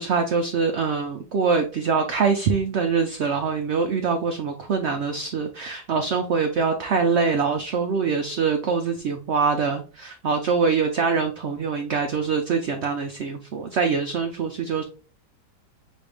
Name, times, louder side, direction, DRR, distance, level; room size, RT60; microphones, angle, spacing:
voice 1, 0.0-14.8, right 5 dB, 75° right, 5 dB, 0.6 m, -24 dB
6.2 x 2.5 x 3.4 m, 0.37 s
omnidirectional pair, 1.8 m